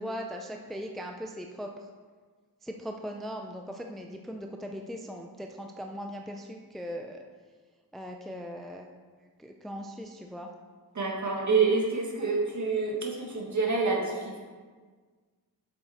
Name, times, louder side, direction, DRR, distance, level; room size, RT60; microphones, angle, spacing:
voice 1, 0.0-1.9 2.6-7.2 7.9-8.9 9.4-10.5, equal, ahead, 2 dB, 0.5 m, -39 dB
voice 2, 10.9-14.4, right 4 dB, 50° right, -1 dB, 1.7 m, -27 dB
7.7 x 7.0 x 4.3 m, 1.5 s
wide cardioid pair, 120°, 38 cm